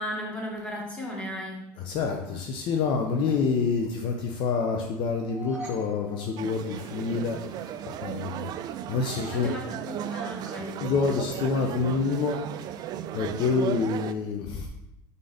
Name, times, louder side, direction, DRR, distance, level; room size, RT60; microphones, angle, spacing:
voice 1, 0.0-1.6 9.3-10.8 13.4-13.7, equal, 10° left, -2 dB, 1.7 m, -35 dB
voice 2, 1.8-7.4 7.9-8.5 8.9-9.5 10.8-12.4 13.1-14.7, left 4 dB, 50° left, 2 dB, 0.7 m, -27 dB
sound 1, 5.1-7.4, right 1 dB, 5° right, 1.7 m, -44 dB
sound 2, 6.4-14.1, right 10 dB, 40° right, 0.3 m, -36 dB
5.5 x 4.0 x 5.0 m, 0.88 s
supercardioid pair, 130°, 11 cm